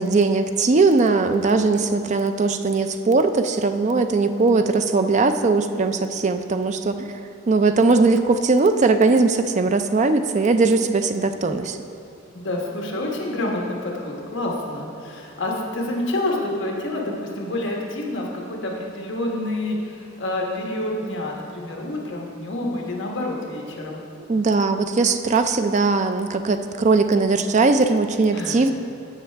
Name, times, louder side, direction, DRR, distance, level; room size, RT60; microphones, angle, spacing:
voice 1, 0.0-7.0 7.5-11.8 24.3-28.7, right 3 dB, 35° right, 8 dB, 0.4 m, -19 dB
voice 2, 12.3-24.0 28.3-28.6, left 1 dB, 60° left, -1 dB, 1.2 m, -28 dB
15.0 x 5.6 x 3.4 m, 2.5 s
head